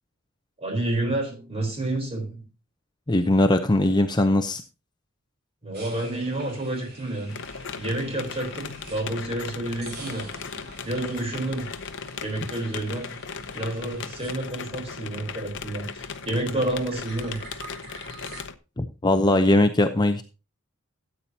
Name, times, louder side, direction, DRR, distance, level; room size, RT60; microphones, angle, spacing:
voice 1, 0.6-2.4 5.6-7.4 7.8-10.3 10.8-11.7 12.2-13.2 13.5-17.4, right 1 dB, 30° right, 3.9 m, -29 dB
voice 2, 3.1-4.6 18.8-20.2, left 1 dB, 20° left, 0.7 m, -20 dB
sound 1, 5.7-9.3 9.7-15.2 15.5-18.4, right 2 dB, 50° right, 4.2 m, -46 dB
sound 2, 7.3-18.6, left 5 dB, 60° left, 0.8 m, -37 dB
13.5 x 8.7 x 2.8 m
head